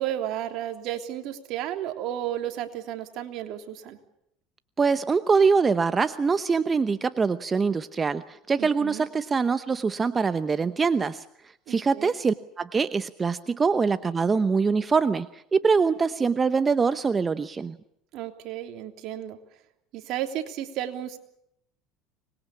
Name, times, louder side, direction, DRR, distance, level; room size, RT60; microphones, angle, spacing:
voice 1, 0.0-4.0 8.6-9.1 11.7-12.1 18.1-19.4 19.9-21.2, right 12 dB, 60° right, 5 dB, 3.2 m, -33 dB
voice 2, 4.8-11.2 11.7-17.8, right 5 dB, 25° right, 12 dB, 0.9 m, -24 dB
25.0 x 21.0 x 8.5 m, 0.77 s
supercardioid pair, 105°, 0 cm